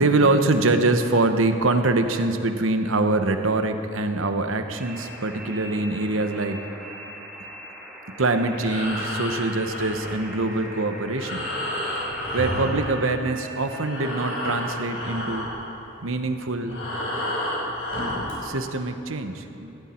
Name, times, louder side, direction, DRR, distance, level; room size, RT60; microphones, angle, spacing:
voice 1, 0.0-6.6 8.2-11.5 12.3-15.5 16.0-16.8 18.4-19.8, right 2 dB, 90° right, 7 dB, 1.1 m, -24 dB
sound 1, 4.8-15.1, right 1 dB, 5° right, 2.0 m, -41 dB
Breathing, 8.5-13.5 13.7-18.4, left 1 dB, 70° left, 4.5 m, -31 dB
18.0 x 15.5 x 4.5 m, 2.9 s
head